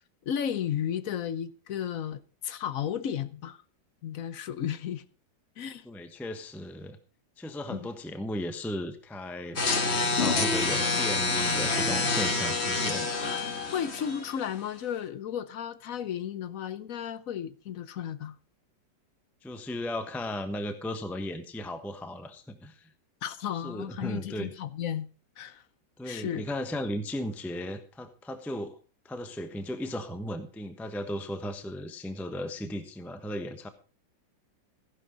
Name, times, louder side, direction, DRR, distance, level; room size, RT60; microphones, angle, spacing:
voice 1, 0.2-3.6 4.0-5.0 5.6-5.9 7.7-7.9 13.7-18.3 23.2-25.1 25.4-25.6 26.0-26.4, left 9 dB, 60° left, 1.0 m, -34 dB
voice 2, 5.8-7.0 7.4-13.1 19.4-22.9 23.6-24.5 26.0-28.8 29.0-33.7, left 1 dB, ahead, 0.8 m, -36 dB
sound 1, 9.6-14.6, left 3 dB, 40° left, 1.6 m, -27 dB
15.0 x 11.0 x 3.9 m
omnidirectional pair, 2.0 m